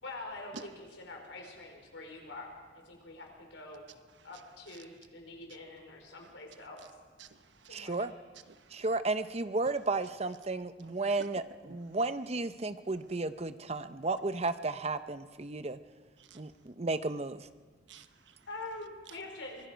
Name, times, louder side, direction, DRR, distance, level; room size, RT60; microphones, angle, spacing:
voice 1, 0.0-0.7 1.0-3.8 4.2-6.8 7.7-8.1 18.5-19.7, left 2 dB, 80° left, 2 dB, 4.8 m, -45 dB
voice 2, 7.2-7.9 8.5-8.8 10.8-10.9 11.7-11.8 16.2-16.4 17.9-18.5 19.1-19.2, right 4 dB, 75° right, 10 dB, 1.1 m, -52 dB
voice 3, 7.7-8.1 8.7-11.4 11.7-15.8 16.3-17.5, right 3 dB, 35° right, 12 dB, 0.7 m, -33 dB
24.5 x 20.5 x 5.2 m, 1.4 s
head